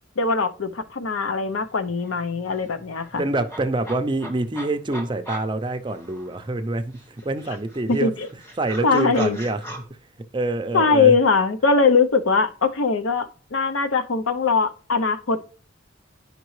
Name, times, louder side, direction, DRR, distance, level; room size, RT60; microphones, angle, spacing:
voice 1, 0.2-3.2 7.9-8.3 8.8-9.4 10.7-15.4, left 4 dB, 90° left, 0.7 m, -21 dB
sound 1, 1.6-1.7 2.0-6.6 6.9-9.8, right 1 dB, 15° left, 1.7 m, -41 dB
voice 2, 3.2-8.1 8.6-9.6 10.3-11.1, right 2 dB, 25° right, 0.5 m, -26 dB
10.5 x 5.2 x 3.2 m
head